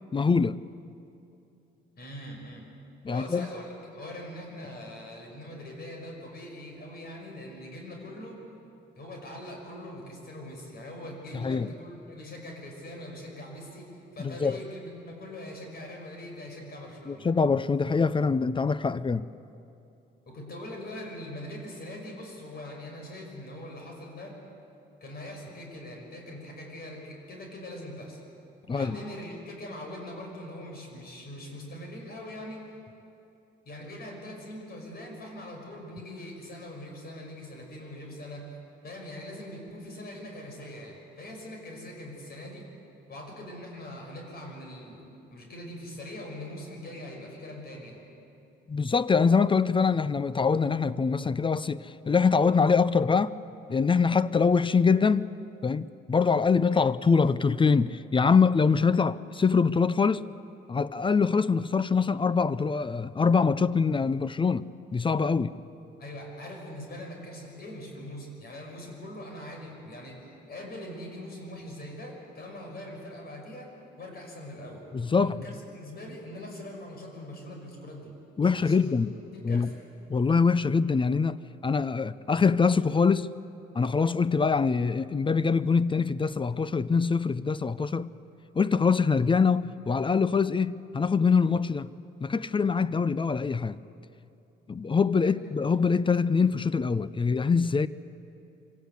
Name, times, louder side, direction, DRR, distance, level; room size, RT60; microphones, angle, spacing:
voice 1, 0.1-0.6 3.0-3.5 11.3-11.7 14.2-14.6 17.1-19.3 28.7-29.0 48.7-53.3 53.7-55.3 55.6-60.3 60.7-64.6 64.9-65.6 74.9-75.4 78.4-79.1 79.4-79.7 80.1-83.3 83.7-88.1 88.6-91.9 92.2-93.8 94.7-97.9, left 5 dB, 25° left, 0.5 m, -24 dB
voice 2, 2.0-2.7 3.1-8.4 9.0-17.3 20.3-24.4 25.0-28.2 28.7-32.7 33.7-38.6 38.8-42.7 43.1-45.0 45.3-48.0 66.0-70.2 70.5-74.8 75.2-78.1 78.6-78.9 79.3-79.7, left 1 dB, 50° left, 5.8 m, -42 dB
24.5 x 17.0 x 8.2 m
cardioid pair, 90°, 20 cm